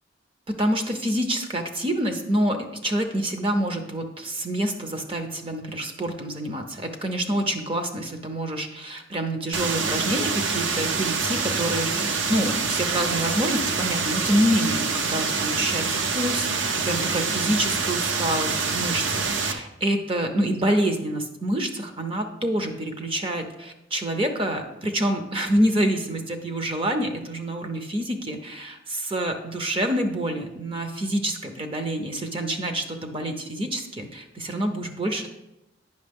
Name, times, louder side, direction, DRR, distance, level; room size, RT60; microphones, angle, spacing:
voice 1, 0.5-35.3, right 1 dB, 25° right, 5 dB, 0.6 m, -27 dB
sound 1, 9.5-19.5, right 4 dB, 70° right, 0.7 m, -26 dB
9.3 x 5.9 x 3.5 m, 0.92 s
head